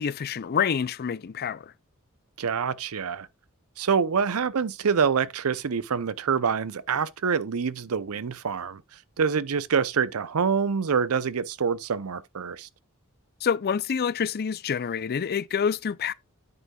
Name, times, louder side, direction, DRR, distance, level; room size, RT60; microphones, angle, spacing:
voice 1, 0.0-1.7 13.4-16.1, left 7 dB, 45° left, 0.4 m, -27 dB
voice 2, 2.4-3.3 3.8-12.7, right 6 dB, 90° right, 0.6 m, -26 dB
9.4 x 8.2 x 2.3 m
head